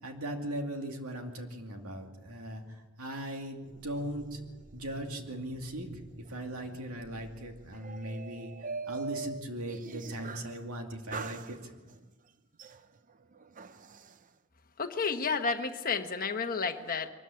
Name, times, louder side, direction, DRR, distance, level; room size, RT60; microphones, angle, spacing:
voice 1, 0.0-4.4 4.7-5.9 6.2-11.7, right 1 dB, 75° right, 4 dB, 2.4 m, -39 dB
sound 1, 3.6-10.6 11.1-12.0 12.6-14.2, right 4 dB, 35° right, 0.6 m, -44 dB
voice 2, 14.8-17.1, left 5 dB, 40° left, 6 dB, 1.2 m, -31 dB
23.0 x 13.5 x 8.5 m, 1.3 s
head